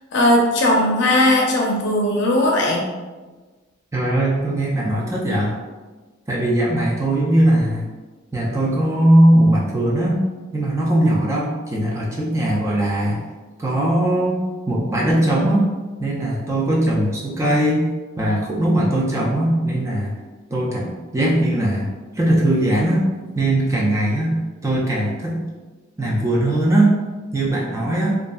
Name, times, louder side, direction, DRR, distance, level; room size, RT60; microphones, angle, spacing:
voice 1, 0.1-2.9, left 1 dB, 60° left, -2 dB, 0.6 m, -18 dB
voice 2, 3.9-5.5 6.3-7.9 8.3-10.2 10.5-13.2 13.6-15.7 16.0-17.9 18.2-20.2 20.5-21.9 22.1-23.0 23.4-24.4 24.6-25.4 26.0-27.0 27.3-28.2, right 1 dB, 15° right, -4 dB, 0.3 m, -19 dB
2.7 x 2.4 x 2.3 m, 1.3 s
head